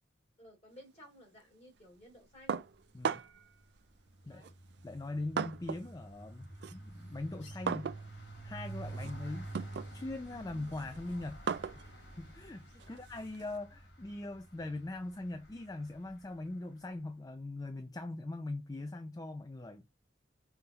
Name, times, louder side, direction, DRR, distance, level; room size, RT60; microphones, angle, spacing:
voice 1, 0.4-2.6 4.2-4.5 12.8-13.0, equal, 35° left, 3.0 m, -56 dB
sound 1, 2.5-3.5 4.4-6.0 6.3-13.6, right 6 dB, 60° right, 0.3 m, -40 dB
sound 2, 2.7-3.1 3.4-16.5, right 2 dB, 70° left, 2.5 m, -49 dB
voice 2, 4.8-7.9 8.4-9.5 9.9-11.6 12.2-19.8, left 2 dB, 20° left, 0.3 m, -41 dB
5.7 x 2.7 x 2.8 m
head